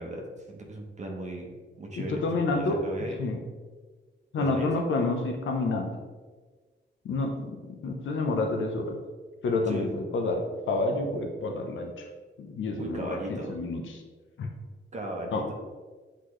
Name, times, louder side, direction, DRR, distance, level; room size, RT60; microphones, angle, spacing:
voice 1, 0.0-1.5 1.8-3.2 4.4-4.7 9.7-9.9 12.8-13.6 14.9-15.5, right 1 dB, 35° right, 1 dB, 0.9 m, -37 dB
voice 2, 2.0-2.8 3.2-3.4 4.3-6.0 7.0-9.0 9.4-12.1 12.4-14.0 14.4-14.5 15.3-15.5, left 3 dB, 80° left, 3 dB, 0.8 m, -29 dB
8.2 x 4.0 x 3.2 m, 1.4 s
wide cardioid pair, 155°, 20 cm